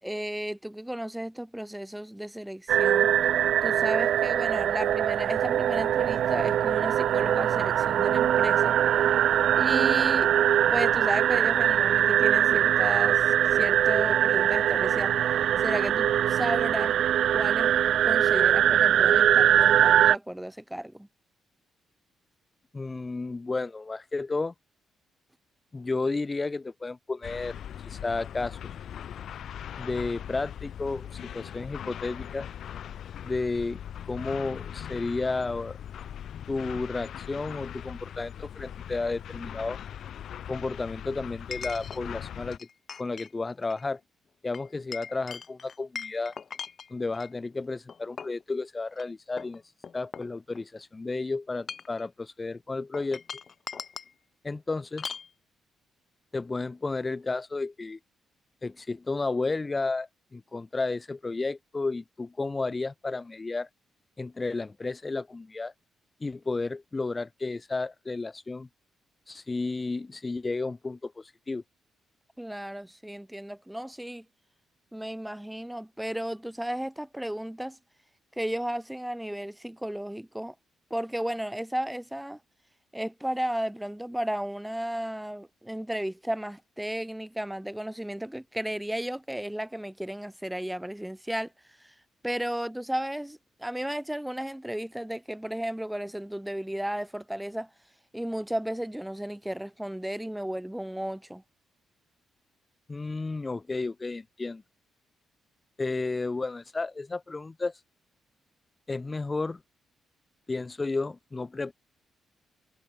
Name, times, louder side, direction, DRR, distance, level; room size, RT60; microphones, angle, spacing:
voice 1, 0.0-3.1 3.6-8.8 9.6-10.3 10.7-15.1 15.6-16.9 17.3-21.1 72.4-74.3 74.9-77.8 78.4-80.5 80.9-82.4 82.9-91.5 91.8-91.9 92.2-97.7 98.1-101.4, right 1 dB, 5° right, 6.9 m, -34 dB
sound 1, 2.7-20.2, right 10 dB, 60° right, 1.3 m, -22 dB
voice 2, 22.7-24.5 25.7-28.6 29.8-32.5 33.2-35.8 36.5-39.8 40.5-42.6 43.0-44.0 44.4-46.3 46.9-53.2 54.4-55.1 56.3-58.0 58.6-63.7 64.2-65.7 66.2-68.7 69.3-71.6 102.9-104.6 105.8-107.8 108.9-109.6 110.5-111.7, left 3 dB, 15° left, 3.4 m, -32 dB
sound 2, 27.2-42.6, left 9 dB, 55° left, 4.1 m, -40 dB
Chink clink, 38.0-38.1 41.5-42.0 42.5-43.3 43.6-43.9 44.5-47.3 47.9-48.4 48.9-49.0 49.4-50.8 51.5-52.0 52.9-54.1 55.0-55.3, left 6 dB, 35° left, 4.9 m, -40 dB
cardioid pair, 175°, 0 cm